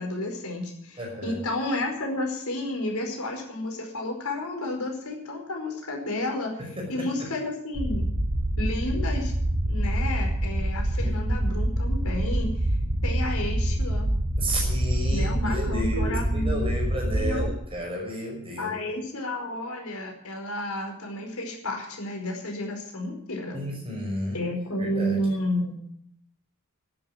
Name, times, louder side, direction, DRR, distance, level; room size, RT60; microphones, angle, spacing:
voice 1, 0.0-6.5 6.9-8.1 8.6-9.4 9.7-12.7 13.0-14.1 15.1-16.8 17.2-17.5 18.6-23.6 24.3-25.8, left 1 dB, 80° left, 2 dB, 4.8 m, -31 dB
voice 2, 1.0-1.4 6.6-7.3 11.0-11.3 14.4-18.8 23.5-24.4 24.8-25.4, equal, 25° right, 0 dB, 5.8 m, -33 dB
sound 1, 7.7-17.5, right 1 dB, 70° right, 2.7 m, -26 dB
11.5 x 11.0 x 9.7 m, 0.69 s
head